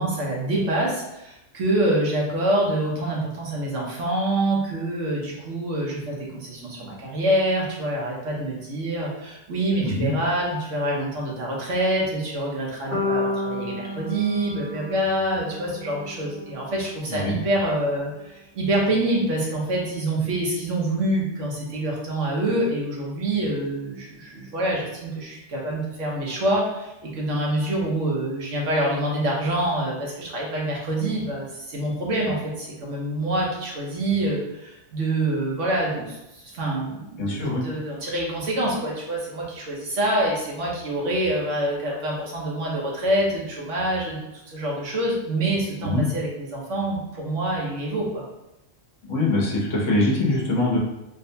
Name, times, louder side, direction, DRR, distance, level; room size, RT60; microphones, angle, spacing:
voice 1, 0.0-48.2, right 1 dB, 75° right, -3 dB, 1.2 m, -26 dB
sound 1, 12.9-17.0, left 2 dB, 10° left, 0.8 m, -31 dB
voice 2, 37.2-37.6 45.8-46.0 49.1-50.8, left 2 dB, 85° left, -2 dB, 1.2 m, -23 dB
4.0 x 2.1 x 2.7 m, 0.93 s
omnidirectional pair, 1.3 m